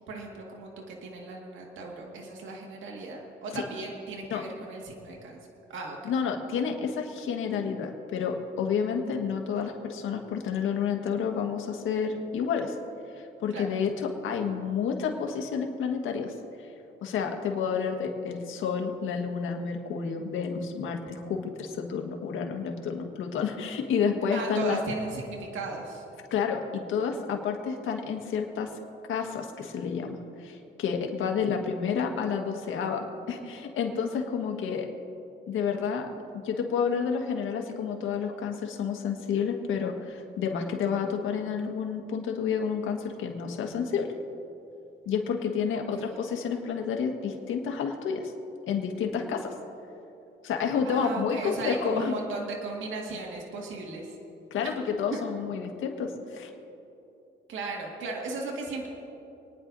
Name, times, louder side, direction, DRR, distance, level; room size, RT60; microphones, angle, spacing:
voice 1, 0.1-5.4 5.7-6.0 13.5-13.6 24.3-26.0 31.5-31.6 45.7-46.1 50.9-54.1 54.6-54.7 55.1-55.2 57.5-58.9, right 3 dB, 80° right, -1 dB, 2.0 m, -36 dB
voice 2, 6.0-12.7 13.2-16.3 17.0-24.8 26.3-28.7 29.1-34.9 35.5-36.1 36.4-44.1 45.0-48.3 48.7-49.5 50.4-52.1 54.5-56.5, left 6 dB, 80° left, 3 dB, 1.6 m, -30 dB
28.5 x 10.0 x 2.7 m, 2.8 s
cardioid pair, 90°, 20 cm